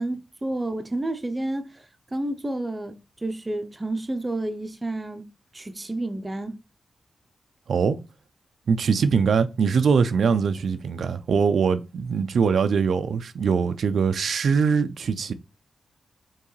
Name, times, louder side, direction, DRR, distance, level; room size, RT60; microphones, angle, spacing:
voice 1, 0.0-1.8 2.1-2.9 3.2-5.2 5.5-6.5, right 1 dB, 20° right, 0.5 m, -30 dB
voice 2, 7.7-8.0 8.7-15.3, right 6 dB, 75° right, 0.3 m, -22 dB
4.6 x 2.9 x 3.1 m
wide cardioid pair, 140°, 0 cm